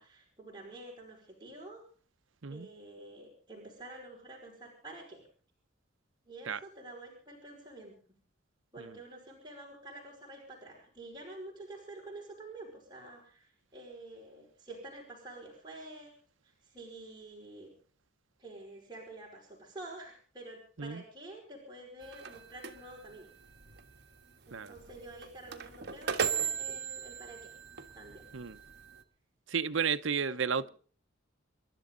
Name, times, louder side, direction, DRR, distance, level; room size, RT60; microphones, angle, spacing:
voice 1, 0.0-1.8 2.5-5.2 6.3-8.0 8.7-16.1 16.6-17.7 18.4-23.3 24.5-27.5 27.9-28.2 30.3-30.7, right 2 dB, 25° right, 5.1 m, -48 dB
sound 1, 22.0-29.0, right 7 dB, 60° right, 1.5 m, -38 dB
voice 2, 29.5-30.7, right 6 dB, 80° right, 0.8 m, -32 dB
27.5 x 11.5 x 3.9 m
head